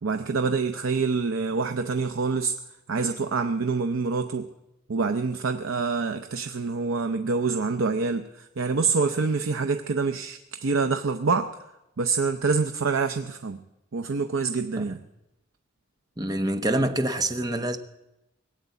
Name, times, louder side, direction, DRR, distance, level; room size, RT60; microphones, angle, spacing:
voice 1, 0.0-2.5 2.9-4.5 4.9-11.5 12.0-13.6 13.9-15.0, right 4 dB, 85° right, 0.6 m, -26 dB
voice 2, 16.2-17.8, right 1 dB, 20° right, 0.8 m, -26 dB
18.5 x 8.7 x 8.2 m
head